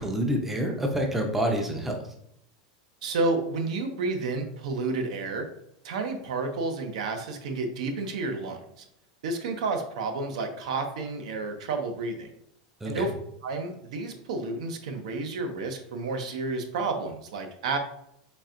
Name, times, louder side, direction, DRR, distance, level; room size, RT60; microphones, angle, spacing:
voice 1, 0.0-2.0 12.8-13.1, equal, 5° right, 2 dB, 0.5 m, -27 dB
voice 2, 3.0-5.4 5.8-8.6 9.2-12.3 12.8-13.1 13.4-17.8, right 3 dB, 85° right, 6 dB, 0.7 m, -30 dB
4.2 x 3.3 x 2.5 m, 0.75 s
supercardioid pair, 155°, 4 cm